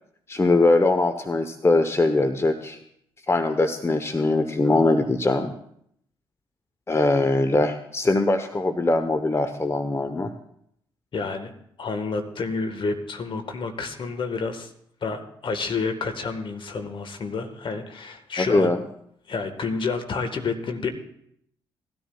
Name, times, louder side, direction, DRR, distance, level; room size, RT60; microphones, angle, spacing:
voice 1, 0.3-2.8 3.3-5.5 6.9-10.3 18.4-18.8, left 2 dB, 25° left, 8 dB, 0.9 m, -21 dB
voice 2, 11.1-11.5 11.8-14.7 15.0-18.8 19.3-20.9, left 4 dB, 50° left, 7 dB, 1.5 m, -29 dB
19.0 x 13.0 x 2.3 m, 0.70 s
hypercardioid pair, 45°, 11 cm